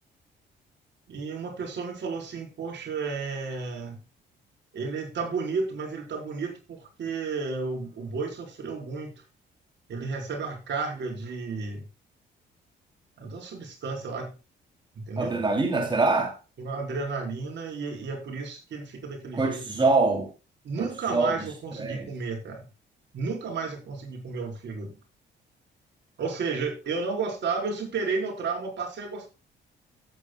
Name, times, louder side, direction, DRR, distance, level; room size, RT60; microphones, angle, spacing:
voice 1, 1.1-4.0 4.7-9.1 9.9-11.8 13.2-14.3 15.0-15.4 16.6-19.6 20.6-22.7 23.1-25.0 26.2-29.3, right 4 dB, 65° right, 4.0 m, -32 dB
voice 2, 15.2-16.3 19.3-20.3 20.8-21.5 21.8-22.1, right 3 dB, 25° right, 2.7 m, -24 dB
15.0 x 8.4 x 2.2 m
cardioid pair, 90°, 20 cm